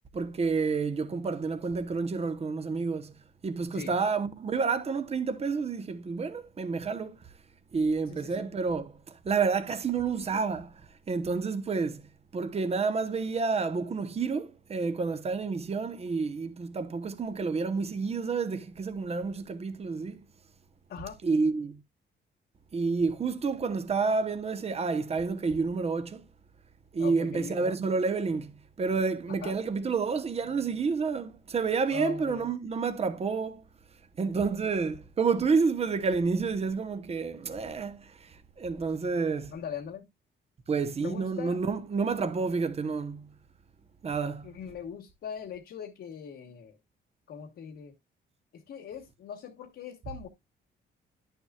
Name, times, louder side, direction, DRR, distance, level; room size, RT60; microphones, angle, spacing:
voice 1, 0.1-3.1 3.4-7.2 7.7-10.7 11.1-12.0 12.3-20.2 21.2-21.8 22.7-26.2 26.9-28.5 28.8-33.6 34.2-39.5 40.7-43.3 44.0-44.5, right 4 dB, 30° right, 1.0 m, -29 dB
voice 2, 8.1-8.4 20.9-21.2 27.0-27.8 29.4-29.5 31.9-32.5 39.5-40.1 41.0-41.6 44.4-46.8 47.3-47.9 48.5-50.3, left 8 dB, 70° left, 1.4 m, -40 dB
10.5 x 7.0 x 2.3 m
cardioid pair, 125°, 19 cm